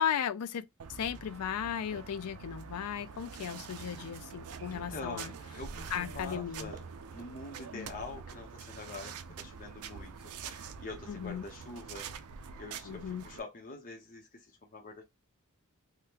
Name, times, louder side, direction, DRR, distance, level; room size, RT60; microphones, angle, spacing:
voice 1, 0.0-5.3 5.9-6.7 7.7-7.9 11.1-11.4 12.9-13.2, left 8 dB, 85° left, 0.4 m, -36 dB
sound 1, 0.8-13.4, right 6 dB, 75° right, 0.4 m, -46 dB
sound 2, 1.2-9.9, right 3 dB, 55° right, 0.9 m, -59 dB
voice 2, 4.7-12.1 12.4-15.0, left 3 dB, 40° left, 0.8 m, -45 dB
3.5 x 2.2 x 2.8 m
head